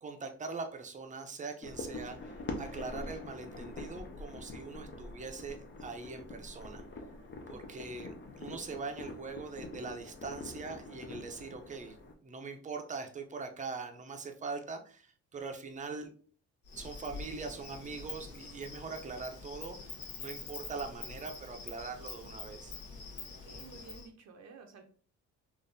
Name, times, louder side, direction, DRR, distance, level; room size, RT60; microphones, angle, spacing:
voice 1, 0.0-6.8 7.5-16.1 16.8-22.7, right 4 dB, 25° right, 5 dB, 0.6 m, -42 dB
sound 1, 1.6-12.1, left 2 dB, 40° left, 0.6 m, -45 dB
Insect, 16.7-24.1, left 4 dB, 75° left, 1.0 m, -46 dB
voice 2, 23.2-24.8, right 5 dB, 60° right, 5 dB, 0.6 m, -53 dB
3.6 x 2.5 x 2.6 m, 0.43 s
cardioid pair, 90°, 30 cm